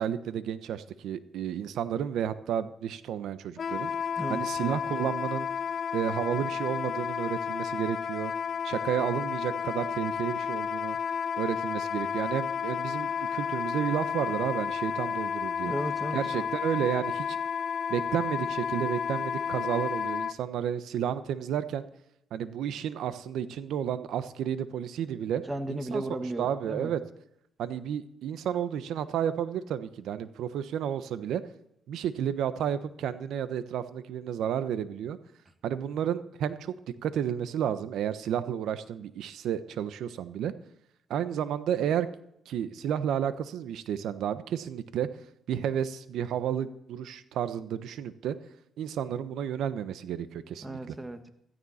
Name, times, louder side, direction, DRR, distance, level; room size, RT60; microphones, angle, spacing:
voice 1, 0.0-3.9 4.3-5.5 5.9-8.3 8.6-11.0 11.4-15.7 16.1-17.4 17.9-21.9 22.3-25.4 25.7-26.0 26.4-27.0 27.6-31.4 31.9-35.2 35.6-36.7 37.0-40.5 41.1-42.1 42.5-45.1 45.5-48.3 48.8-50.9, right 9 dB, 80° right, 12 dB, 1.1 m, -31 dB
Wind instrument woodwind instrument, 3.6-20.3, left 7 dB, 50° left, 0.5 m, -32 dB
voice 2, 15.6-16.5 25.5-26.9 50.6-51.3, right 1 dB, 15° right, 8 dB, 1.8 m, -35 dB
16.0 x 14.0 x 4.3 m, 0.76 s
cardioid pair, 90°, 0 cm